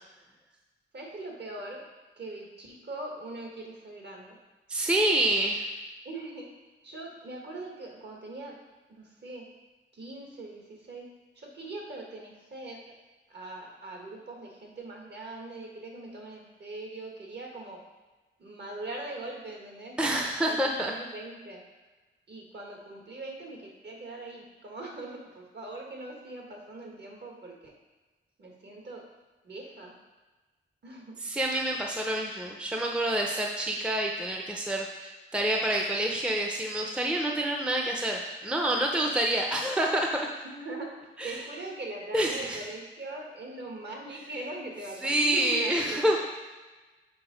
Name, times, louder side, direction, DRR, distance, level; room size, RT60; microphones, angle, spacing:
voice 1, 0.9-1.8 2.2-4.4 6.0-6.5 6.8-8.6 8.9-9.5 9.9-11.1 11.4-12.8 13.3-17.8 18.4-21.6 22.3-27.7 28.4-29.0 29.4-30.0 30.8-31.2 40.4-40.9 41.2-46.1, right 2 dB, 55° right, -1 dB, 1.4 m, -41 dB
voice 2, 4.7-5.6 20.0-20.9 31.2-40.3 41.2-41.4 42.1-42.6 45.0-46.3, right 1 dB, 5° right, 1 dB, 0.5 m, -27 dB
6.0 x 4.6 x 5.0 m, 1.2 s
wide cardioid pair, 165°, 21 cm